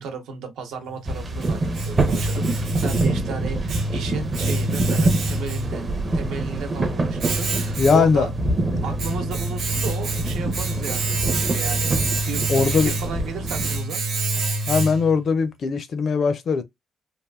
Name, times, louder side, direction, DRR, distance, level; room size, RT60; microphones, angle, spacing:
voice 1, 0.0-5.8 6.1-8.3 8.8-11.9 12.3-14.0, right 5 dB, 80° right, 1.0 m, -34 dB
Domestic sounds home sounds, 0.9-15.3, right 2 dB, 55° right, 1.0 m, -27 dB
sound 1, 1.1-13.8, right 2 dB, 20° right, 0.5 m, -26 dB
voice 2, 7.8-8.3 12.5-12.9 14.7-16.6, left 5 dB, 40° left, 0.5 m, -20 dB
3.3 x 2.4 x 2.3 m
cardioid pair, 170°, 0 cm